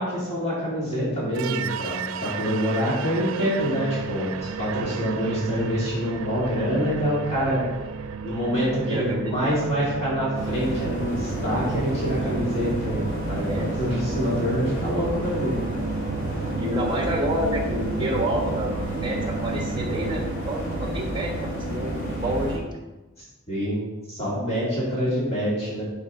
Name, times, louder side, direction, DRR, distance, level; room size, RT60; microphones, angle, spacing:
voice 1, 0.0-7.6 8.2-15.6 22.3-22.4 23.5-23.8 24.1-25.8, equal, 30° left, -7 dB, 2.7 m, -26 dB
sound 1, 1.3-20.3, right 5 dB, 90° right, 0.5 m, -34 dB
voice 2, 8.9-9.5 13.4-13.7 16.2-16.3 16.5-22.7, right 1 dB, 25° right, 1 dB, 1.4 m, -29 dB
sound 2, 10.3-22.6, right 1 dB, 75° left, 2.6 m, -30 dB
11.0 x 5.2 x 3.8 m, 1.1 s
head